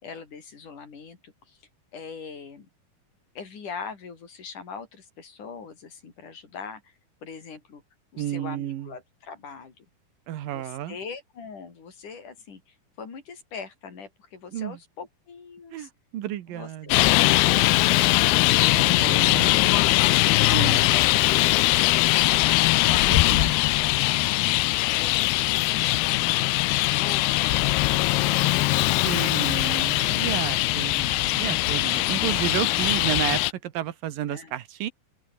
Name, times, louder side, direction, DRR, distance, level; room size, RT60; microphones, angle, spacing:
voice 1, 0.0-1.6 1.9-2.7 3.4-7.8 8.1-9.8 10.5-15.9 16.5-20.0 20.4-22.3 22.8-24.4 24.9-29.9 30.4-30.8 34.3-34.5, left 5 dB, 55° left, 5.6 m, -41 dB
voice 2, 8.2-8.9 10.3-11.0 14.5-14.8 15.7-17.1 18.7-19.6 20.5-20.9 23.1-23.6 29.0-34.9, right 12 dB, 70° right, 2.9 m, -32 dB
Traffic noise roadway noise, 16.9-33.5, left 19 dB, 90° left, 2.7 m, -21 dB
open air
omnidirectional pair, 4.5 m